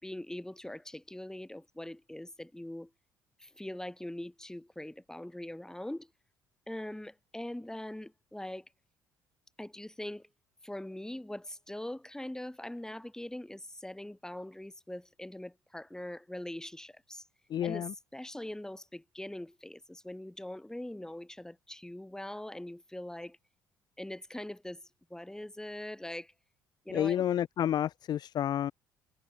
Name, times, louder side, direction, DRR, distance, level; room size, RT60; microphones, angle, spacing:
voice 1, 0.0-2.9 3.4-6.1 6.7-8.7 9.6-10.3 10.6-17.2 17.6-23.4 24.0-24.8 25.1-26.3 26.8-27.2, left 1 dB, 5° left, 2.7 m, -42 dB
voice 2, 17.5-17.9 26.9-28.7, left 10 dB, 40° left, 0.5 m, -30 dB
figure-of-eight pair, 50°, 10 cm